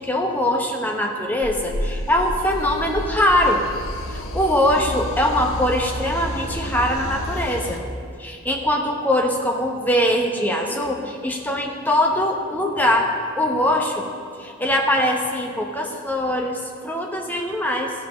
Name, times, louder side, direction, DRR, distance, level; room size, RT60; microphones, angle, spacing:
voice 1, 0.0-3.6 4.1-7.8 8.2-14.0 14.4-17.9, left 1 dB, 10° left, 1 dB, 0.9 m, -22 dB
sound 1, 1.4-7.8, equal, 75° left, 1.0 m, -30 dB
16.0 x 5.5 x 5.6 m, 2.2 s
head